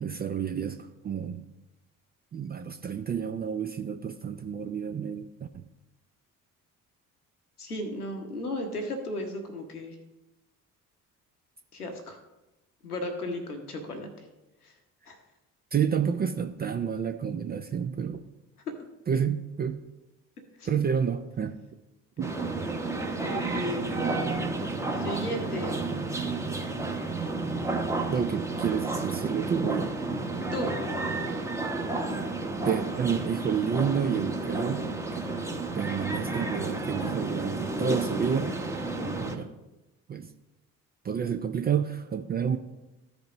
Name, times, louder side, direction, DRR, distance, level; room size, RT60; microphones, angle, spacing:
voice 1, 0.0-1.4 2.3-5.6 15.7-18.3 19.1-19.8 20.6-21.6 22.2-22.4 28.1-29.9 32.6-35.3 35.7-38.6 39.2-39.5 40.1-40.3 41.0-42.6, right 7 dB, 25° right, 9 dB, 0.4 m, -30 dB
voice 2, 7.6-10.0 11.7-12.2 12.8-14.1 14.6-14.7 15.1-15.2 20.6-20.8 23.1-24.0 25.0-25.8 30.5-30.7, left 1 dB, 85° left, 5 dB, 1.0 m, -35 dB
sound 1, 22.2-39.4, right 2 dB, 5° right, 0.9 m, -31 dB
14.0 x 5.1 x 3.0 m, 1.0 s
figure-of-eight pair, 45°, 44 cm